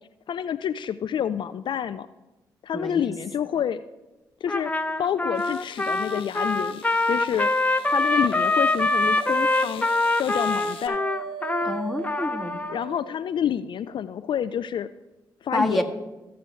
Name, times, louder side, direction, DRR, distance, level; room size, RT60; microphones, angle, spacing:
voice 1, 0.3-2.1 2.6-3.8 4.4-4.7 5.0-7.5 7.9-9.9 10.2-11.0 12.7-14.9 15.4-15.8, left 9 dB, 55° left, 12 dB, 0.4 m, -28 dB
voice 2, 2.7-3.1 11.6-12.6 15.5-15.8, left 1 dB, ahead, 1 dB, 1.5 m, -27 dB
sound 1, 4.5-4.6 5.3-10.9, left 9 dB, 70° left, 0.8 m, -46 dB
Trumpet, 4.5-12.8, left 2 dB, 15° left, 0.7 m, -24 dB
Dog, 7.6-13.2, right 7 dB, 80° right, 0.5 m, -39 dB
15.0 x 6.8 x 3.2 m, 1.1 s
hypercardioid pair, 45°, 9 cm